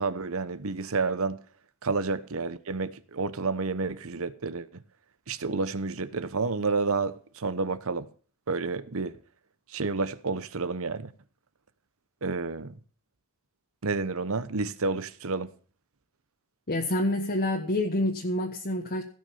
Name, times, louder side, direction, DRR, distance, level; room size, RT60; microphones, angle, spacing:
voice 1, 0.0-1.4 1.8-4.7 5.3-8.1 8.5-9.2 9.7-11.1 12.2-12.8 13.8-15.5, right 4 dB, 65° right, 1.0 m, -30 dB
voice 2, 16.7-19.0, left 1 dB, 45° left, 1.4 m, -27 dB
17.0 x 6.4 x 7.0 m
head